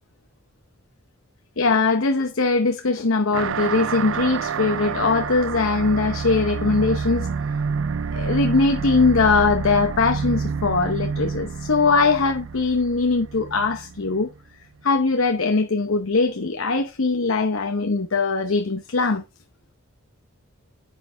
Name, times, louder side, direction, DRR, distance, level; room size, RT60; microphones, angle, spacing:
voice 1, 1.6-7.3 8.1-14.3 14.8-19.2, left 3 dB, 75° left, 0.9 m, -21 dB
sound 1, 3.3-14.3, right 5 dB, 65° right, 0.4 m, -28 dB
9.4 x 5.8 x 3.4 m
head